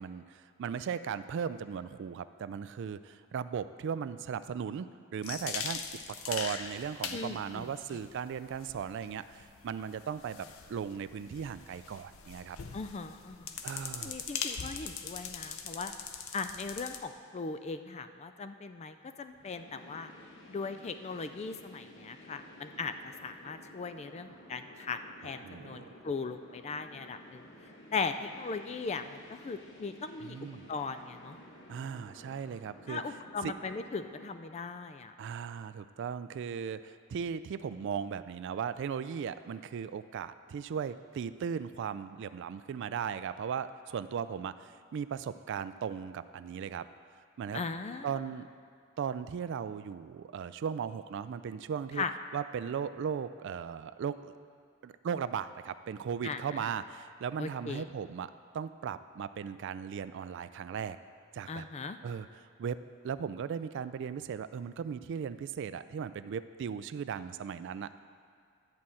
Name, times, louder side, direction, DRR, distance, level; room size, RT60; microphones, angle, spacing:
voice 1, 0.0-5.8 6.1-12.6 13.6-14.2 25.2-25.9 30.2-30.7 31.7-33.0 33.4-33.5 35.2-46.9 47.4-47.6 48.0-48.5 49.0-52.0 52.3-54.3 54.8-61.0 61.3-61.7 62.0-62.8 63.0-67.9, right 7 dB, 60° right, 13 dB, 0.3 m, -37 dB
sound 1, 5.2-17.0, left 7 dB, 80° left, 0.6 m, -41 dB
voice 2, 7.1-7.7 12.7-13.6 14.0-15.9 16.3-20.1 20.5-27.4 27.9-30.4 30.7-31.4 32.9-35.1 47.5-48.1 52.0-52.1 56.2-56.7 57.4-57.8 61.5-62.0, left 4 dB, 30° left, 9 dB, 0.4 m, -38 dB
sound 2, 19.3-34.3, left 1 dB, 60° left, 1.1 m, -54 dB
11.0 x 4.2 x 7.6 m, 2.3 s
head